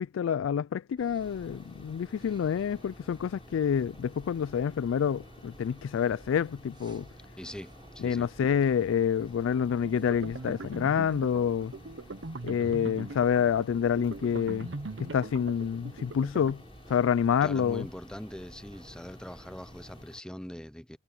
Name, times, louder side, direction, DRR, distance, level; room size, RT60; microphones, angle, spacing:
voice 1, 0.0-7.1 8.0-11.7 12.4-14.7 15.0-16.6 16.9-17.9, left 7 dB, 85° left, 0.3 m, -28 dB
sound 1, 1.0-20.1, right 1 dB, 25° right, 1.0 m, -53 dB
sound 2, 1.2-20.2, left 1 dB, 30° left, 4.0 m, -53 dB
voice 2, 7.3-8.3 17.4-21.0, equal, 5° left, 0.5 m, -42 dB
sound 3, 9.8-16.5, right 2 dB, 65° right, 0.9 m, -41 dB
head